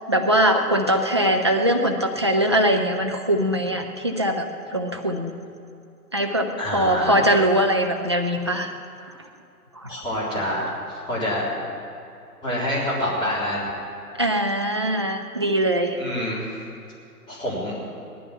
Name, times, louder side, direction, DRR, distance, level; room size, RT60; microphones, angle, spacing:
voice 1, 0.1-4.5 4.7-5.3 6.1-8.7 9.8-9.9 14.2-16.0, equal, 20° right, 1 dB, 0.4 m, -21 dB
voice 2, 6.6-7.2 9.9-11.5 12.4-13.7 16.0-16.6 17.3-17.8, left 1 dB, 10° left, -7 dB, 3.5 m, -27 dB
18.0 x 13.0 x 5.9 m, 2.6 s
figure-of-eight pair, 130°, 47 cm